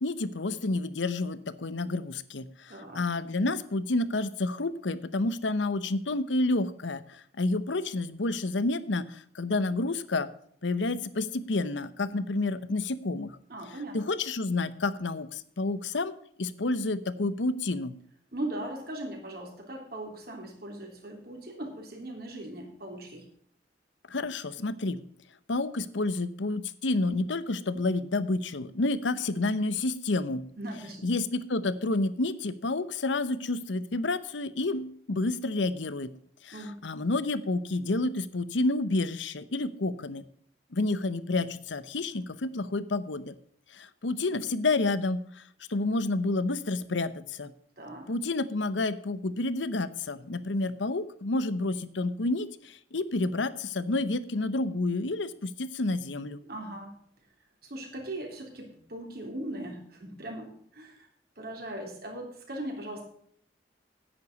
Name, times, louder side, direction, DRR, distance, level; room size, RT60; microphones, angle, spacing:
voice 1, 0.0-10.3 10.6-13.4 13.9-16.1 16.4-17.9 24.1-25.0 25.5-30.4 31.0-36.1 36.4-40.2 40.7-43.3 43.7-45.4 45.7-47.5 48.1-56.4, left 2 dB, 90° left, 15 dB, 0.9 m, -29 dB
voice 2, 2.7-3.0 13.5-14.0 18.3-23.2 30.6-31.1 36.5-36.8 47.8-48.1 56.4-56.9 57.6-61.1 61.4-63.1, right 1 dB, 55° right, 2 dB, 3.4 m, -39 dB
9.9 x 9.8 x 5.3 m, 0.64 s
head